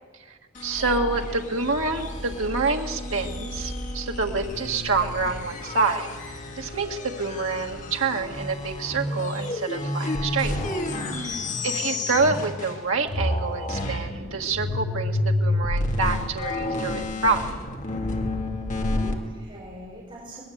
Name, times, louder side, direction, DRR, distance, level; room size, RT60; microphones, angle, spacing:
voice 1, 0.3-6.2 6.6-10.6 11.2-17.6, right 4 dB, 90° right, 2 dB, 1.6 m, -27 dB
sound 1, 0.5-12.8 13.1-19.1, left 1 dB, 40° left, 2.5 m, -30 dB
voice 2, 11.4-12.1 18.7-20.4, equal, 25° right, -5 dB, 5.5 m, -43 dB
23.5 x 20.5 x 7.9 m, 1.5 s
head